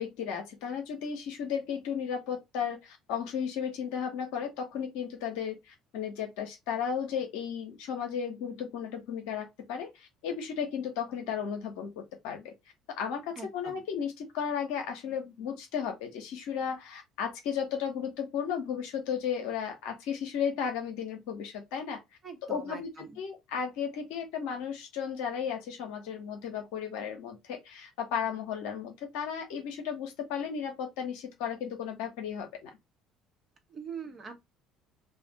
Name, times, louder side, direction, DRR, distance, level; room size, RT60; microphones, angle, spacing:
voice 1, 0.0-12.5 12.9-22.0 22.5-32.7, left 7 dB, 65° left, 0.8 m, -34 dB
voice 2, 13.4-13.8 22.2-23.2 33.7-34.4, right 5 dB, 35° right, 0.9 m, -43 dB
2.5 x 2.3 x 3.8 m
figure-of-eight pair, 55°, 0 cm